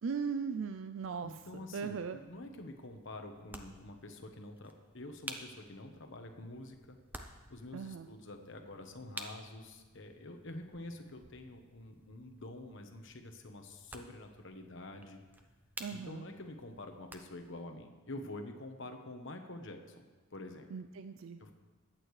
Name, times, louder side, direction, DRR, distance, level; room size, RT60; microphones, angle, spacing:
voice 1, 0.0-2.2 7.7-8.1 15.8-16.2 20.7-21.4, right 5 dB, 60° right, 9 dB, 0.4 m, -38 dB
voice 2, 1.2-7.0 7.2-15.2 15.9-20.0 20.3-20.7 21.4-21.5, left 1 dB, 60° left, 5 dB, 1.2 m, -47 dB
sound 1, 1.2-17.6, right 1 dB, 10° right, 0.7 m, -53 dB
21.5 x 8.9 x 3.3 m, 1.3 s
head